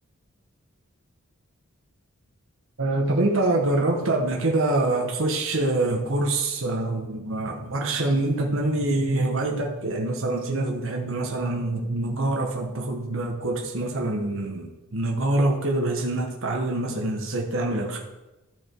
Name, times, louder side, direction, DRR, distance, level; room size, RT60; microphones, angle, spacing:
voice 1, 2.8-18.0, right 2 dB, 65° right, 0 dB, 1.2 m, -25 dB
12.5 x 6.0 x 4.6 m, 1.0 s
head